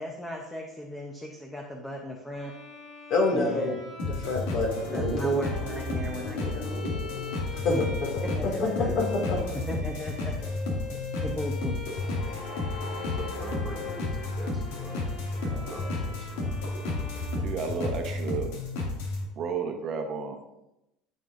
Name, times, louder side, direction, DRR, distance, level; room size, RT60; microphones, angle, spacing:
voice 1, 0.0-2.5 3.3-3.8 4.9-6.9 7.7-7.8 8.2-8.9 9.7-10.6 11.2-11.8, equal, 5° left, 1 dB, 0.8 m, -36 dB
Bowed string instrument, 2.3-18.2, left 3 dB, 30° left, 2.3 m, -43 dB
voice 2, 3.1-5.1 7.5-9.6, left 3 dB, 50° left, 0 dB, 2.3 m, -28 dB
sound 1, 4.0-19.2, left 2 dB, 90° left, 2.4 m, -32 dB
voice 3, 4.9-5.5 6.8-6.9 8.3-8.4 9.1-9.2 17.4-18.5 19.4-20.4, right 5 dB, 40° right, 4 dB, 1.0 m, -32 dB
voice 4, 13.1-16.7, right 3 dB, 10° right, -2 dB, 1.8 m, -43 dB
14.0 x 5.7 x 2.6 m, 0.89 s
cardioid pair, 150°, 0 cm